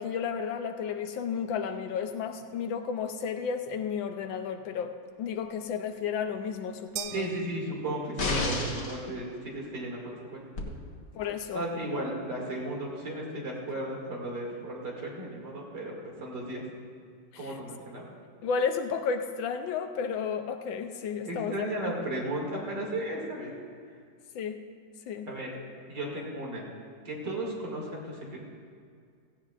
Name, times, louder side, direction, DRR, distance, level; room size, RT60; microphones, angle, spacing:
voice 1, 0.0-7.3 9.1-9.2 11.1-11.6 17.3-17.5 18.4-21.9 24.3-24.6 25.1-25.3, left 6 dB, 80° left, 7 dB, 1.4 m, -32 dB
sound 1, 7.0-8.4, right 11 dB, 90° right, 1.4 m, -41 dB
voice 2, 7.1-10.9 11.5-16.6 17.4-18.1 21.2-23.5 25.3-25.5 25.9-26.6 27.0-28.4, right 1 dB, 55° right, -3 dB, 3.0 m, -35 dB
sound 2, 8.2-9.0 10.6-10.7, left 2 dB, 50° left, 1.8 m, -29 dB
16.5 x 15.5 x 2.5 m, 2.2 s
omnidirectional pair, 2.2 m